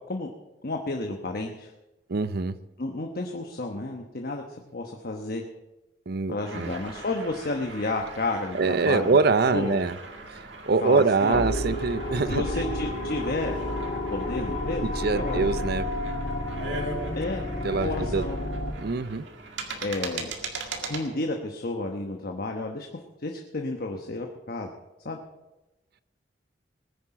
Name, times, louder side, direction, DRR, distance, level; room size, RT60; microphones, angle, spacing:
voice 1, 0.6-1.7 2.8-5.4 6.3-9.2 9.5-9.8 10.8-11.5 12.3-13.5 14.1-15.5 17.2-17.4 17.7-18.4 19.8-20.3 20.8-22.9 23.2-24.7 25.0-25.2, left 2 dB, 55° left, 3 dB, 1.1 m, -31 dB
voice 2, 2.1-2.6 6.1-6.7 8.5-9.9 10.7-12.4 14.8-15.9 17.6-18.3 18.8-19.3, right 4 dB, 60° right, 15 dB, 0.6 m, -24 dB
sound 1, 6.4-21.1, right 3 dB, 75° right, 2.0 m, -40 dB
sound 2, 11.3-18.7, left 1 dB, 75° left, 2.9 m, -31 dB
20.0 x 10.0 x 4.9 m, 1.0 s
head